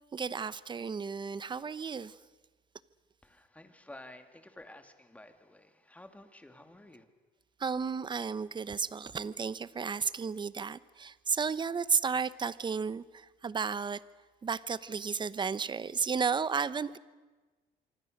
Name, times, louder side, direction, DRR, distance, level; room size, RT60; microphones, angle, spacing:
voice 1, 0.1-2.2 7.6-14.0 14.4-17.0, right 5 dB, 25° right, 17 dB, 0.9 m, -33 dB
voice 2, 3.2-7.1, left 1 dB, 10° left, 7 dB, 2.4 m, -52 dB
26.0 x 25.0 x 6.6 m, 1.3 s
cardioid pair, 110°, 17 cm